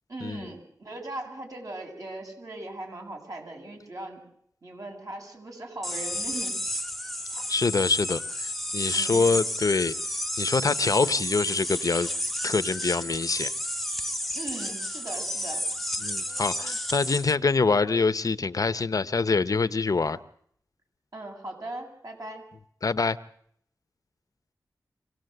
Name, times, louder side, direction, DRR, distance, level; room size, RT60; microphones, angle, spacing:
voice 1, 0.1-4.2 4.6-6.5 8.9-9.3 14.3-15.6 21.1-22.4, right 2 dB, 50° right, 2 dB, 7.6 m, -39 dB
sound 1, 5.8-17.4, left 1 dB, ahead, 1.2 m, -31 dB
voice 2, 7.5-9.9 10.4-12.1 12.4-13.5 16.0-20.2 22.8-23.2, left 4 dB, 55° left, 13 dB, 1.0 m, -25 dB
26.0 x 17.5 x 8.0 m, 0.67 s
wide cardioid pair, 70°, 7 cm